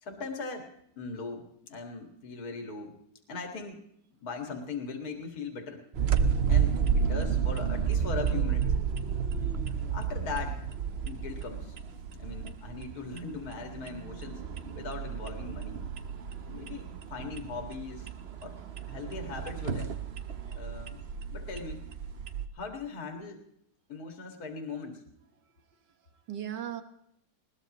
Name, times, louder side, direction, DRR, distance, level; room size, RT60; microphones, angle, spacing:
voice 1, 0.0-3.0 3.3-3.9 4.2-5.8 6.5-8.7 9.3-9.6 9.9-10.7 11.0-11.8 12.1-14.5 14.7-15.8 16.5-18.1 18.4-18.6 18.9-20.0 20.5-21.0 21.3-21.9 22.5-23.4 23.9-25.0, left 4 dB, 60° left, 3 dB, 2.5 m, -39 dB
sound 1, 5.9-22.5, right 7 dB, 45° right, 0.9 m, -31 dB
voice 2, 25.4-26.8, right 10 dB, 75° right, 8 dB, 2.0 m, -41 dB
21.0 x 19.0 x 3.0 m, 0.73 s
omnidirectional pair, 1.9 m